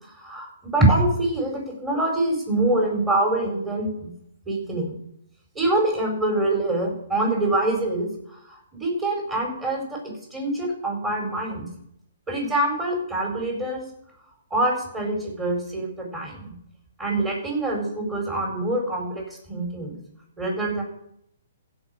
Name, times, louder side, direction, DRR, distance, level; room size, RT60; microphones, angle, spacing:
voice 1, 0.0-4.1 4.5-5.0 5.5-8.1 8.8-11.6 12.3-13.8 14.5-16.5 17.0-19.2 19.5-20.0 20.4-20.8, right 2 dB, 15° right, -1 dB, 4.6 m, -25 dB
15.5 x 5.5 x 6.6 m, 0.73 s
hypercardioid pair, 130°, 0 cm